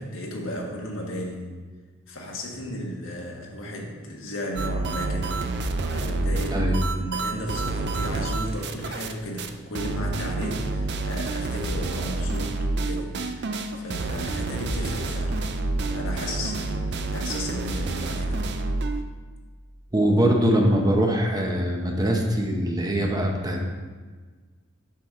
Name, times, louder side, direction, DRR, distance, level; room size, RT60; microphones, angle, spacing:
voice 1, 0.0-1.5 2.1-5.4 5.9-15.4 15.9-18.4, equal, 85° left, -1 dB, 1.5 m, -34 dB
sound 1, 4.6-9.1 9.4-9.5 9.8-19.0, right 2 dB, 60° right, 0.5 m, -28 dB
voice 2, 19.9-23.6, right 1 dB, 20° right, 1 dB, 0.8 m, -22 dB
7.3 x 6.0 x 3.7 m, 1.4 s
head